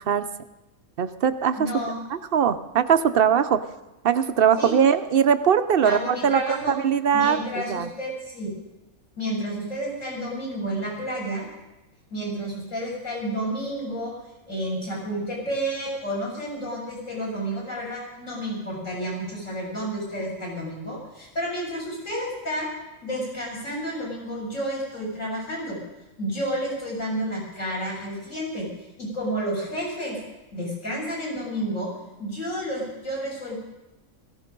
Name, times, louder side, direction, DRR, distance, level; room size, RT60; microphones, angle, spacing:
voice 1, 1.0-1.6 2.1-3.6 4.0-7.9, right 8 dB, 50° right, 11 dB, 0.8 m, -21 dB
voice 2, 1.6-2.0 4.6-4.7 5.8-6.7 7.1-8.5 9.2-11.5 12.1-14.1 14.5-22.7 23.0-25.8 26.2-28.7 29.0-30.2 30.5-31.9 32.2-33.6, equal, 65° left, -5 dB, 7.8 m, -30 dB
18.0 x 15.0 x 5.3 m, 0.99 s
omnidirectional pair, 1.4 m